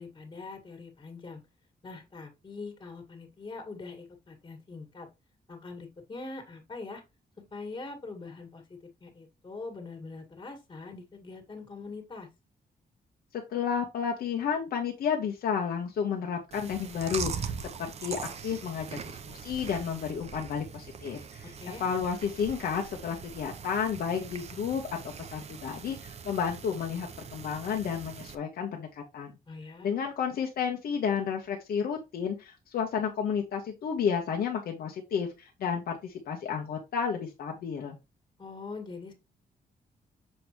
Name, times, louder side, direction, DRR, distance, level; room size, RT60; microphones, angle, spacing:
voice 1, 0.0-1.4 1.8-5.1 5.5-7.0 7.5-8.6 9.0-12.3 21.6-21.8 29.5-29.9 38.4-39.1, left 3 dB, 30° left, 1.9 m, -43 dB
voice 2, 13.3-17.5 17.8-21.5 21.8-29.3 29.8-38.0, left 7 dB, 80° left, 1.2 m, -32 dB
Chewing mastication, 16.5-28.3, right 6 dB, 45° right, 0.7 m, -41 dB
6.9 x 5.3 x 3.0 m
wide cardioid pair, 150°, 16 cm